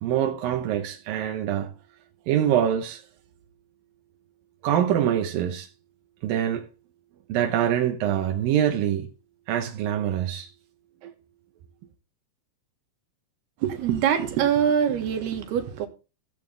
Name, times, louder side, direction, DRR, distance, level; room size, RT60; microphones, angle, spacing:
voice 1, 0.0-1.7 2.3-3.0 4.6-5.7 6.2-6.6 7.3-9.1 9.5-10.5 11.0-11.1, right 10 dB, 75° right, 2.5 m, -24 dB
voice 2, 13.6-15.9, right 8 dB, 90° right, 3.6 m, -24 dB
15.0 x 9.0 x 3.4 m
omnidirectional pair, 4.4 m